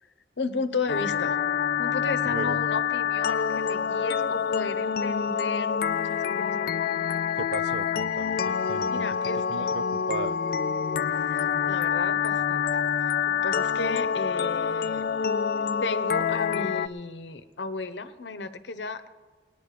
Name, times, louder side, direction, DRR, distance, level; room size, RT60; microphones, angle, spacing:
voice 1, 0.4-1.4 1.8-6.7 8.9-9.7 11.3-12.7 13.0-15.0 15.8-19.1, left 3 dB, 85° left, 12 dB, 0.8 m, -34 dB
sound 1, 0.9-16.9, left 7 dB, 55° left, 0.4 m, -27 dB
voice 2, 2.2-2.6 7.4-9.0 9.5-10.4, right 6 dB, 70° right, 18 dB, 0.3 m, -36 dB
19.0 x 9.5 x 5.0 m, 1.5 s
head